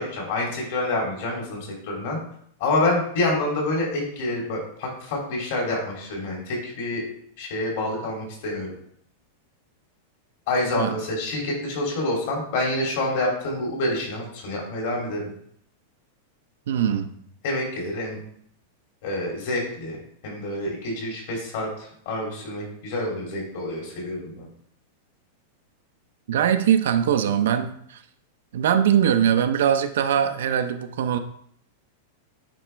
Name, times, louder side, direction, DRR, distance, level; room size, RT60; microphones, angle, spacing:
voice 1, 0.0-2.2 2.6-7.0 7.4-8.7 10.5-15.2 17.4-18.2 19.0-20.0 20.2-21.7 22.0-24.5, left 2 dB, 50° left, -2 dB, 2.7 m, -27 dB
voice 2, 16.7-17.1 26.3-28.0 28.5-31.2, right 9 dB, 70° right, 9 dB, 0.5 m, -21 dB
9.1 x 4.1 x 3.4 m, 0.66 s
supercardioid pair, 175°, 0 cm